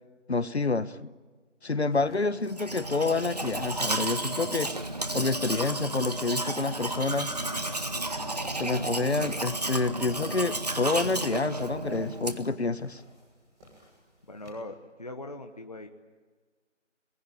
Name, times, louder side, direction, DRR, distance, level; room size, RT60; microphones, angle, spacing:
voice 1, 0.3-1.1 1.6-4.7 5.1-7.3 8.6-13.0, left 3 dB, 60° left, 16 dB, 1.2 m, -28 dB
sound 1, 1.9-14.5, right 1 dB, 5° right, 2.0 m, -53 dB
Domestic sounds home sounds, 2.5-12.6, right 2 dB, 35° right, 1.2 m, -32 dB
voice 2, 14.3-15.9, left 2 dB, 30° left, 5 dB, 1.1 m, -40 dB
27.5 x 20.5 x 9.0 m, 1.4 s
figure-of-eight pair, 170°, 37 cm